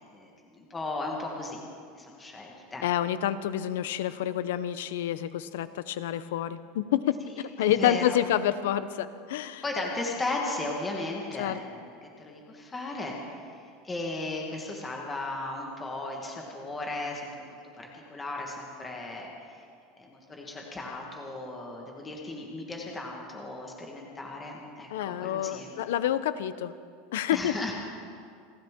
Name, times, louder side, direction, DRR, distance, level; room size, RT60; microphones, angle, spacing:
voice 1, 0.1-1.6 2.0-2.9 7.6-8.2 9.6-19.6 20.0-25.7 27.3-27.7, left 2 dB, 10° left, -1 dB, 1.5 m, -36 dB
voice 2, 2.8-9.6 11.4-11.6 24.9-26.7 27.1-27.5, left 11 dB, 80° left, 14 dB, 0.7 m, -28 dB
29.5 x 11.5 x 3.7 m, 2.3 s
supercardioid pair, 180°, 0 cm